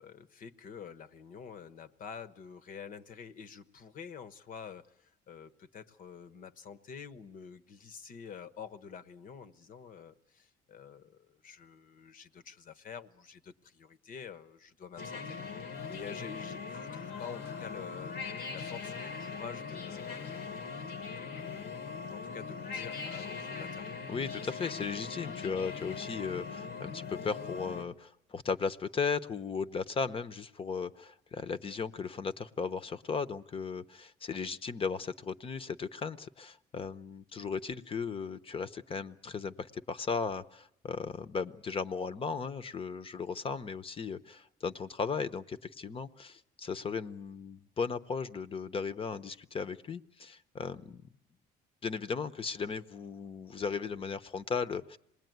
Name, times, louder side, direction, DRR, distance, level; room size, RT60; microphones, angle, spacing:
voice 1, 0.0-15.6 15.9-20.6 21.1-21.8 22.1-23.9, left 7 dB, 55° left, 13 dB, 1.1 m, -48 dB
sound 1, 15.0-27.8, left 5 dB, 80° left, 1.7 m, -40 dB
voice 2, 24.1-51.0 51.8-55.0, left 5 dB, 35° left, 14 dB, 0.9 m, -36 dB
26.5 x 20.0 x 9.4 m, 0.79 s
cardioid pair, 110°, 17 cm